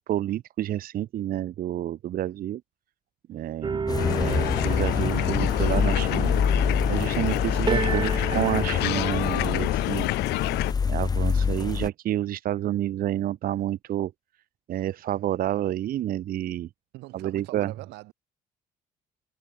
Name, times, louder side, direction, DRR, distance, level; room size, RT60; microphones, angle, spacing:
voice 1, 0.0-2.6 3.3-6.3 6.9-10.1 10.9-14.1 14.7-16.7 17.1-17.7, right 12 dB, 60° right, 1.0 m, -29 dB
sound 1, 3.6-9.4, right 5 dB, 25° right, 2.7 m, -33 dB
sound 2, 3.9-11.9, left 5 dB, 25° left, 0.5 m, -27 dB
sound 3, 4.0-10.7, left 19 dB, 80° left, 0.5 m, -27 dB
voice 2, 16.9-18.1, right 20 dB, 90° right, 3.5 m, -42 dB
cardioid pair, 110°, 17 cm